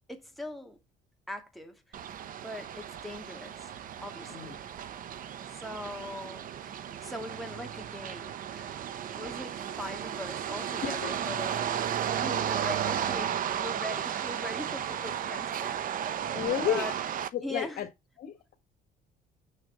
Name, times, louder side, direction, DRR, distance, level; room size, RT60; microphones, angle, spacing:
voice 1, 0.1-0.8 1.3-2.1 2.4-3.7 4.0-4.6 5.5-11.6 12.2-16.3 16.7-16.9 17.4-17.8, left 1 dB, ahead, 2.2 m, -41 dB
sound 1, 1.9-17.3, right 9 dB, 55° right, 0.9 m, -34 dB
voice 2, 10.8-11.1 16.3-16.9 17.3-17.9 18.2-18.5, left 11 dB, 65° left, 1.7 m, -32 dB
6.9 x 6.6 x 3.4 m
cardioid pair, 110°, 17 cm